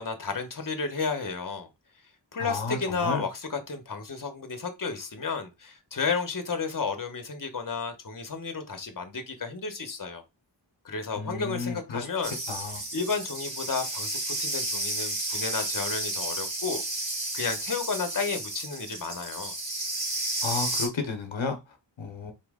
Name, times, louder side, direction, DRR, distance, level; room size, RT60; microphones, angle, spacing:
voice 1, 0.0-1.7 2.3-10.2 10.8-12.4 12.9-16.8 17.3-19.5, left 5 dB, 45° left, 1.0 m, -32 dB
voice 2, 2.4-3.3 11.1-12.1 12.5-12.8 20.4-22.3, left 4 dB, 80° left, 0.9 m, -33 dB
sound 1, 12.2-20.9, right 2 dB, 80° right, 2.4 m, -32 dB
4.4 x 3.1 x 3.6 m
wide cardioid pair, 50°, 45 cm